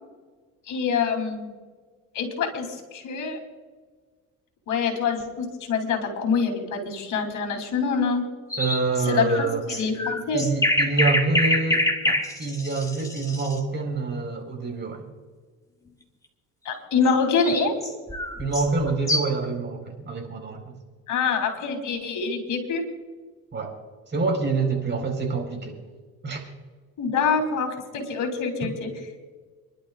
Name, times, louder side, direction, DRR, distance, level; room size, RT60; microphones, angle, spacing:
voice 1, 0.7-1.6 2.1-3.4 4.7-8.2 9.0-10.4 16.6-17.7 21.1-22.8 27.0-28.9, left 5 dB, 70° left, 4 dB, 3.3 m, -25 dB
sound 1, 8.5-13.6 17.0-19.5, left 1 dB, 10° left, 1.9 m, -26 dB
voice 2, 8.6-9.8 10.3-15.1 18.4-20.8 23.5-23.7 24.1-25.8 26.2-26.4 28.6-28.7, right 3 dB, 35° right, 2 dB, 4.5 m, -26 dB
29.0 x 11.5 x 2.4 m, 1.4 s
cardioid pair, 95°, 32 cm